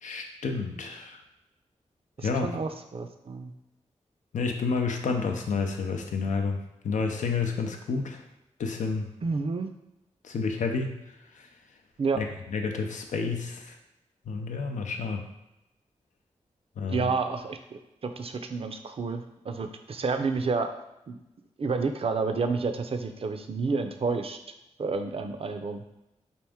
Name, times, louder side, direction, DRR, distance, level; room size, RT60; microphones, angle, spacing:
voice 1, 0.0-1.2 2.2-2.5 4.3-6.6 6.8-8.2 8.6-9.1 10.2-11.0 11.4-11.5 12.1-12.3 12.5-13.7 14.3-15.2 16.8-17.1, left 4 dB, 90° left, 4 dB, 0.5 m, -30 dB
voice 2, 2.2-3.5 9.2-9.7 12.0-12.2 16.9-20.7 21.1-21.2 21.6-24.4 24.8-25.8, right 4 dB, 50° right, 7 dB, 0.4 m, -30 dB
4.4 x 2.6 x 3.5 m, 0.91 s
cardioid pair, 55°, 12 cm